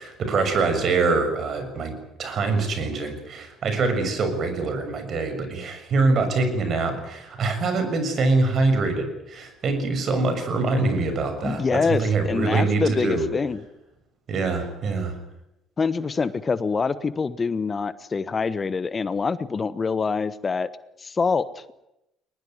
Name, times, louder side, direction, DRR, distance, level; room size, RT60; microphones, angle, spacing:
voice 1, 0.0-13.3 14.3-15.2, right 3 dB, 50° right, 8 dB, 6.8 m, -24 dB
voice 2, 11.4-13.6 15.8-20.7 21.0-21.8, left 4 dB, 30° left, 15 dB, 1.2 m, -25 dB
21.5 x 20.5 x 9.6 m, 0.88 s
hypercardioid pair, 65°, 0 cm